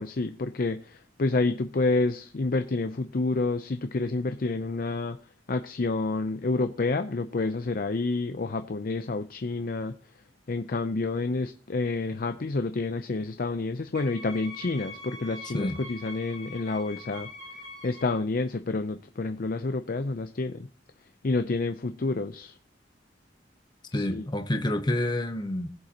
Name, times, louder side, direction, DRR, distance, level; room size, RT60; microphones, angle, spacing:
voice 1, 0.0-5.2 5.5-9.9 10.5-17.3 17.8-20.7 21.2-22.5 23.9-24.3, left 3 dB, 55° left, 0.6 m, -29 dB
Wind instrument woodwind instrument, 13.9-18.2, left 2 dB, 45° right, 3.9 m, -43 dB
voice 2, 23.9-25.7, left 1 dB, 25° left, 0.9 m, -28 dB
19.0 x 7.8 x 2.9 m
head